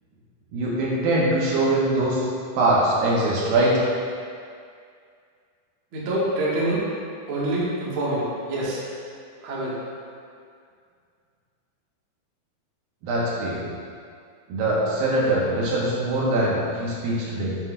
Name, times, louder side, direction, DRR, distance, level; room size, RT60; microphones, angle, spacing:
voice 1, 0.5-2.3 2.5-3.8 13.0-13.6 14.5-17.6, right 1 dB, 75° right, -5 dB, 2.9 m, -22 dB
voice 2, 5.9-6.8 7.3-8.8 9.4-9.7, right 1 dB, 50° right, -7 dB, 1.7 m, -26 dB
10.0 x 7.7 x 2.4 m, 2.3 s
omnidirectional pair, 4.3 m